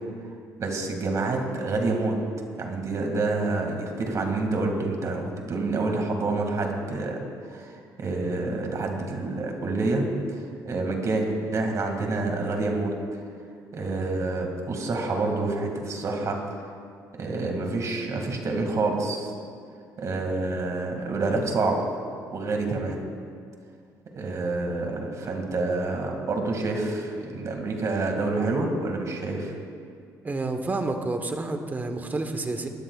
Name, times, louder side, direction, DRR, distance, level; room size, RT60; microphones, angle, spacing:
voice 1, 0.6-2.2 2.6-10.4 10.6-12.9 13.7-16.4 17.1-19.3 20.0-21.8 22.3-23.0 24.1-29.6, right 3 dB, 50° right, 2 dB, 2.2 m, -28 dB
voice 2, 30.2-32.7, right 2 dB, 25° right, 6 dB, 1.2 m, -29 dB
19.5 x 13.0 x 2.4 m, 2.2 s
cardioid pair, 95°, 7 cm